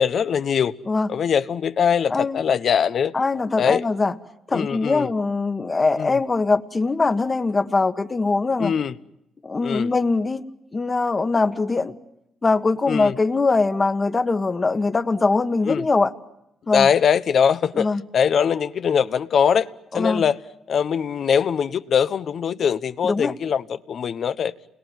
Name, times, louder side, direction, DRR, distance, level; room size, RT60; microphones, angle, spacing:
voice 1, 0.0-0.7 1.1-3.1 3.6-3.8 4.5-5.1 6.0-6.2 8.6-8.9 9.6-9.9 12.9-13.1 15.7-15.8 16.7-17.9 18.1-19.7 19.9-20.4 20.7-24.5, left 7 dB, 55° left, 1.0 m, -21 dB
voice 2, 2.1-2.4 3.1-4.1 4.5-8.7 9.4-10.4 10.7-11.9 12.4-16.1 16.7-16.9 17.7-18.0 19.9-20.2 23.0-23.3, left 3 dB, 25° left, 1.5 m, -22 dB
28.5 x 21.5 x 9.4 m
cardioid pair, 90°, 0 cm